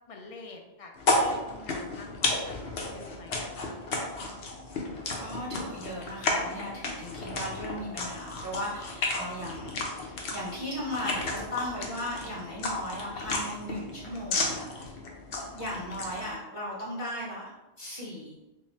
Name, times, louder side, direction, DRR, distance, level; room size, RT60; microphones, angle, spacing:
voice 1, 0.1-2.6 2.9-3.8 15.3-15.6, left 3 dB, 50° left, 2 dB, 0.4 m, -47 dB
sound 1, 1.0-16.3, left 2 dB, 90° left, 1.0 m, -33 dB
voice 2, 5.2-14.9 15.5-17.5 17.8-18.4, left 1 dB, 30° left, -6 dB, 1.2 m, -37 dB
3.7 x 2.1 x 4.1 m, 1.0 s
omnidirectional pair, 1.1 m